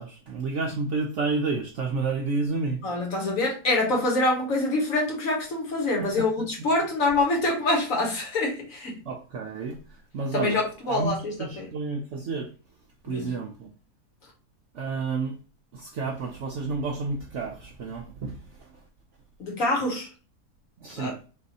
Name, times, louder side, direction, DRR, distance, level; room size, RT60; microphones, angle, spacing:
voice 1, 0.0-2.8 6.0-6.3 6.6-6.7 9.1-11.1 11.4-12.5 13.0-13.7 14.7-15.4 15.7-18.8 20.8-21.2, right 4 dB, 65° right, 0.7 m, -30 dB
voice 2, 2.8-9.0 10.3-11.7 13.1-13.4 19.4-20.1 20.9-21.1, left 2 dB, 55° left, 1.6 m, -26 dB
4.0 x 2.6 x 4.0 m
omnidirectional pair, 1.7 m